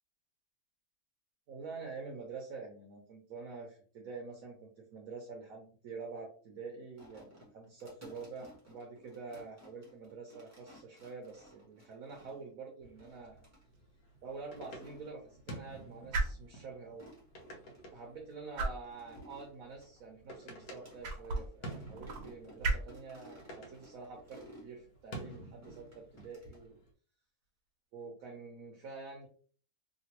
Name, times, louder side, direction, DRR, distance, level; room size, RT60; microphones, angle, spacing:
voice 1, 1.5-13.4 14.2-17.1 17.9-26.8 27.9-29.3, right 4 dB, 65° right, 2 dB, 1.1 m, -47 dB
sound 1, 7.0-12.5 13.0-13.6 14.3-15.1 15.7-16.0 16.2-16.3 16.8-17.8 18.3-21.0 21.3-21.4 21.7-24.7 25.6-26.7, equal, 10° right, 1.1 m, -57 dB
sound 2, 12.8-26.9, right 1 dB, 70° left, 1.2 m, -51 dB
sound 3, 13.1-26.7, right 3 dB, 85° right, 1.3 m, -42 dB
3.0 x 2.9 x 2.8 m, 0.43 s
omnidirectional pair, 1.6 m